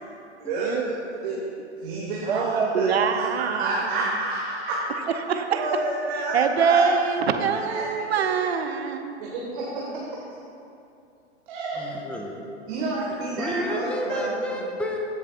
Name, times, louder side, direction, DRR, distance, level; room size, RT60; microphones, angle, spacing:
voice 1, 0.4-1.4 1.8-4.8 5.5-6.8 7.6-8.2 9.2-9.8 11.5-11.8 12.7-14.3, right 2 dB, 45° right, -5 dB, 1.7 m, -29 dB
voice 2, 2.3-3.9 5.3-5.6 6.3-9.2, right 6 dB, 60° right, 6 dB, 0.8 m, -24 dB
voice 3, 11.8-12.4 13.4-15.0, equal, 5° left, 0 dB, 0.4 m, -30 dB
15.0 x 7.5 x 2.5 m, 2.6 s
figure-of-eight pair, 105°, 35 cm